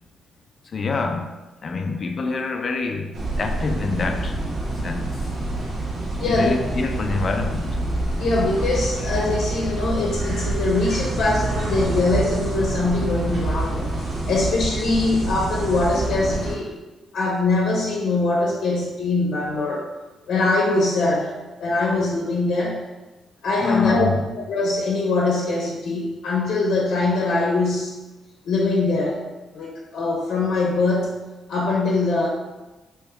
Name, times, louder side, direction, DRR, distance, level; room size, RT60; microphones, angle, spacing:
voice 1, 0.7-1.3 1.6-4.4 4.6-5.1 6.2-7.8 23.6-24.3, left 4 dB, 40° left, 4 dB, 0.4 m, -26 dB
sound 1, 3.1-16.5, right 2 dB, 80° right, 1.3 m, -27 dB
voice 2, 6.2-6.6 8.2-13.9 14.3-16.8 17.1-19.8 20.3-21.3 21.6-22.8 23.4-24.1 24.3-27.9 28.4-29.2 29.5-31.2 31.5-32.3, left 3 dB, 70° left, -2 dB, 0.7 m, -22 dB
3.4 x 3.0 x 3.5 m, 1.1 s
cardioid pair, 140°, 0 cm